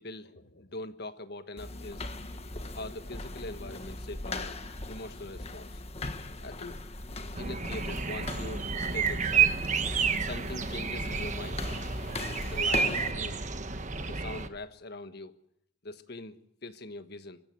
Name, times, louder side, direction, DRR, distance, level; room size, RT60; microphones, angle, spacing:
voice 1, 0.0-2.1 2.7-4.6 4.9-5.8 6.4-6.8 7.4-9.5 10.2-11.7 12.5-13.4 14.1-15.3 15.8-17.4, left 2 dB, 55° left, 10 dB, 1.4 m, -42 dB
sound 1, 1.6-13.1, left 2 dB, 30° left, 1.5 m, -39 dB
sound 2, 7.3-14.5, right 6 dB, 40° right, 1.3 m, -30 dB
24.0 x 16.5 x 7.8 m, 0.79 s
head